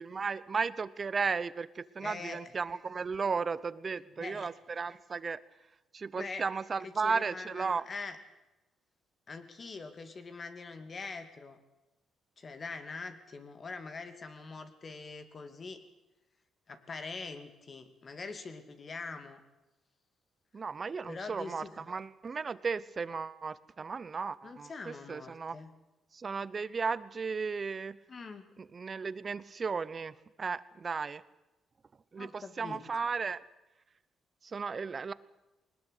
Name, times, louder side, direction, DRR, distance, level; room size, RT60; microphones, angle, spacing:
voice 1, 0.0-5.4 5.9-7.8 20.5-25.6 26.1-28.0 28.6-31.2 32.1-33.4 34.4-35.1, right 5 dB, 35° right, 18 dB, 0.9 m, -35 dB
voice 2, 2.0-2.4 4.2-4.5 6.2-6.4 7.0-8.2 9.3-11.6 12.4-15.8 16.7-19.4 21.1-21.9 24.4-25.8 28.1-28.4 32.2-32.8, left 4 dB, 40° left, 8 dB, 2.5 m, -43 dB
21.0 x 19.5 x 8.3 m, 1.0 s
cardioid pair, 90°, 0 cm